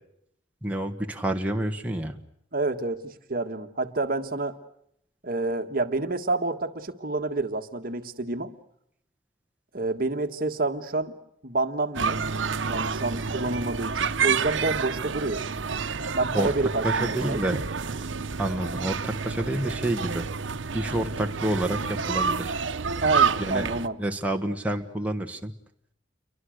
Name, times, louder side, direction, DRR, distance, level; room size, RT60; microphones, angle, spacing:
voice 1, 0.6-2.2 16.0-16.5 16.8-17.6 18.4-20.3 20.7-22.6 23.4-23.7 24.0-25.5, right 1 dB, 10° right, 2 dB, 1.4 m, -29 dB
voice 2, 2.5-4.6 5.2-8.5 9.7-11.1 11.4-12.2 12.6-15.4 16.1-17.5 23.0-24.0, right 3 dB, 50° right, 8 dB, 1.5 m, -28 dB
sound 1, 11.9-23.9, right 5 dB, 85° right, 0.9 m, -29 dB
29.0 x 23.5 x 6.5 m, 0.76 s
head